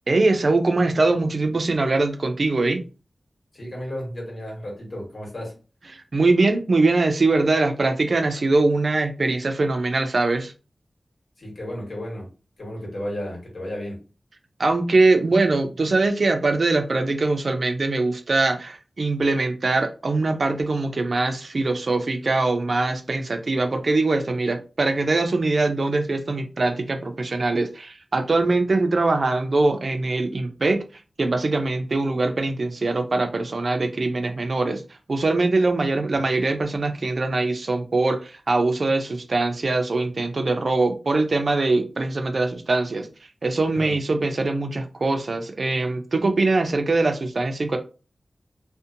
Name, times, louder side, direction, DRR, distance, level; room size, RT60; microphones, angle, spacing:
voice 1, 0.1-2.8 5.9-10.5 14.6-30.8 31.2-34.8 35.1-43.1 43.4-47.8, right 3 dB, 60° right, 0.4 m, -22 dB
voice 2, 3.5-5.5 11.4-12.3 12.6-14.0 43.7-44.0, equal, 70° left, 1.3 m, -33 dB
2.6 x 2.1 x 2.5 m
wide cardioid pair, 65°, 0 cm